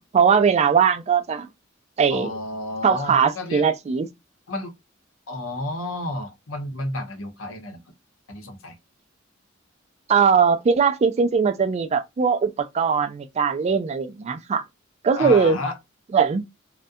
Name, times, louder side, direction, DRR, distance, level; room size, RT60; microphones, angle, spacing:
voice 1, 0.1-1.5 2.0-2.3 2.8-4.1 10.1-14.6 15.0-15.6 16.1-16.4, right 6 dB, 35° right, 0.3 m, -20 dB
voice 2, 2.1-3.6 4.5-4.7 5.3-7.8 8.3-8.8 15.2-15.8, left 2 dB, 85° left, 0.7 m, -31 dB
2.3 x 2.1 x 2.6 m
head